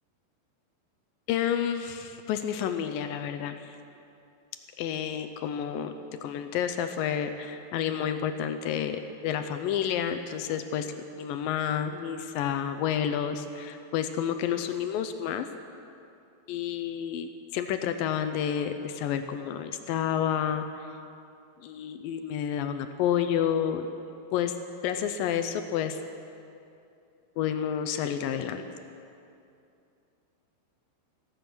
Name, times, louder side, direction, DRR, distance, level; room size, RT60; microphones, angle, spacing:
voice 1, 1.3-3.7 4.8-5.9 6.2-15.5 16.5-20.6 21.6-23.9 24.3-24.6 24.8-26.0 27.4-28.6, left 9 dB, 80° left, 8 dB, 2.1 m, -30 dB
15.5 x 15.0 x 6.1 m, 2.6 s
omnidirectional pair, 4.6 m